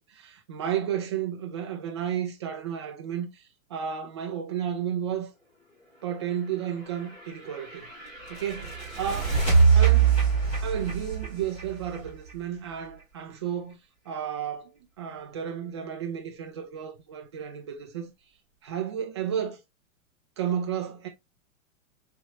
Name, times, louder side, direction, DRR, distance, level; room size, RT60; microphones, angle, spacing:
voice 1, 0.1-3.4 3.7-5.3 6.0-7.9 8.3-8.7 9.0-9.4 9.7-10.2 10.5-13.8 14.1-18.1 18.6-19.6 20.4-21.1, right 9 dB, 20° right, 0.4 m, -32 dB
sound 1, 6.9-12.7, right 6 dB, 15° left, 1.7 m, -24 dB
4.3 x 3.0 x 2.3 m
supercardioid pair, 170°, 42 cm